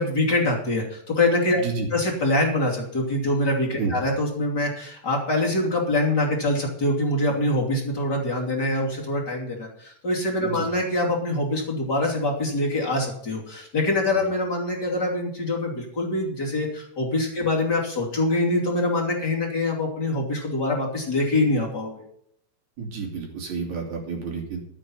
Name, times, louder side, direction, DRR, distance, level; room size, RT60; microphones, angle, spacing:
voice 1, 0.0-1.6 1.9-22.0, left 2 dB, 35° left, -3 dB, 3.2 m, -24 dB
voice 2, 22.8-24.6, right 5 dB, 70° right, 0 dB, 4.3 m, -30 dB
12.5 x 9.1 x 5.6 m, 0.69 s
omnidirectional pair, 3.4 m